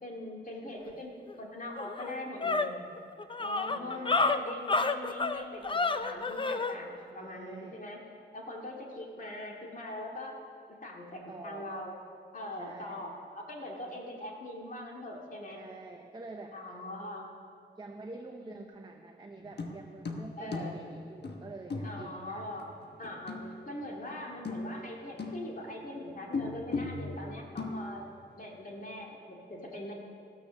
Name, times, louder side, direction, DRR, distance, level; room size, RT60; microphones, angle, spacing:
voice 1, 0.0-1.1 1.4-2.8 3.4-8.0 8.3-10.4 10.8-12.0 12.3-15.6 16.5-17.3 18.4-18.5 20.4-20.8 21.8-22.6 23.0-23.4 23.7-28.0 28.3-29.9, left 1 dB, 45° left, -1 dB, 2.4 m, -42 dB
voice 2, 0.6-1.1 3.6-4.3 7.1-7.8 11.3-11.7 12.5-13.1 15.5-16.8 17.8-22.5, right 3 dB, 25° right, 3 dB, 0.8 m, -47 dB
sound 1, 1.3-1.4 1.8-6.7, left 3 dB, 25° left, 0.5 m, -30 dB
sound 2, 19.4-24.1 24.4-25.8 26.3-28.4 28.7-28.8, left 3 dB, 60° left, 1.2 m, -38 dB
15.0 x 13.5 x 6.4 m, 2.3 s
wide cardioid pair, 155°, 19 cm